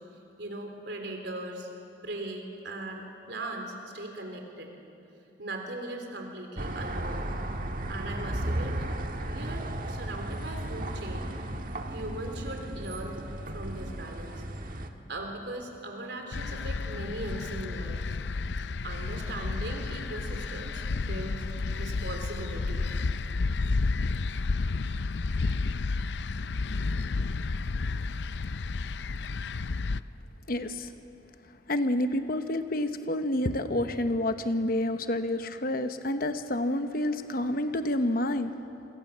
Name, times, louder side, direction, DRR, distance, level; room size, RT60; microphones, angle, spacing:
voice 1, 0.4-1.7 2.0-4.7 5.4-7.3 7.9-11.2 11.9-13.2 13.5-14.4 15.1-18.0 18.8-21.4 21.7-22.8, right 2 dB, 70° right, 3 dB, 3.7 m, -39 dB
sound 1, 6.6-14.9, right 1 dB, 50° right, 1.6 m, -35 dB
sound 2, 16.3-30.0, left 3 dB, 70° left, 0.5 m, -31 dB
voice 2, 30.5-30.9 31.7-38.5, left 1 dB, 55° left, 9 dB, 1.0 m, -29 dB
27.5 x 23.5 x 7.4 m, 2.8 s
head